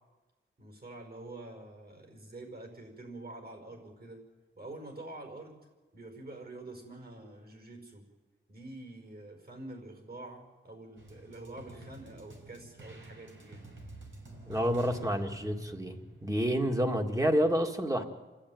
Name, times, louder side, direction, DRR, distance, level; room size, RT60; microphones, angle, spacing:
voice 1, 0.6-4.2 4.6-5.6 5.9-8.0 8.5-13.7, right 2 dB, 45° right, 4 dB, 5.4 m, -46 dB
sound 1, 11.0-17.5, right 2 dB, 65° right, 4.9 m, -49 dB
voice 2, 14.5-16.0 16.2-18.0, equal, 15° right, 3 dB, 2.1 m, -28 dB
29.0 x 12.0 x 9.4 m, 1.2 s
wide cardioid pair, 115°, 21 cm